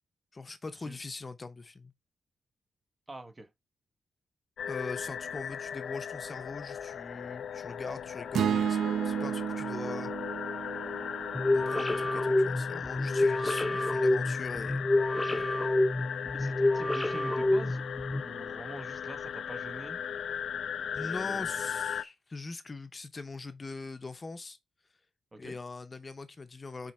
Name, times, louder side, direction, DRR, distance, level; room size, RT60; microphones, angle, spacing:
voice 1, 0.3-1.9 4.6-8.8 9.0-10.1 11.5-14.9 15.3-15.7 20.9-24.6 25.4-26.9, left 3 dB, 30° left, 0.7 m, -42 dB
voice 2, 3.1-3.5 16.3-17.9 18.2-20.0 20.9-21.6 25.3-25.6, right 2 dB, 20° right, 0.9 m, -45 dB
sound 1, 4.6-22.0, left 8 dB, 75° left, 0.4 m, -37 dB
sound 2, 8.3-12.6, right 9 dB, 85° right, 0.3 m, -33 dB
sound 3, 11.3-18.2, left 2 dB, 10° left, 0.3 m, -28 dB
6.0 x 4.4 x 4.2 m
wide cardioid pair, 120°, 0 cm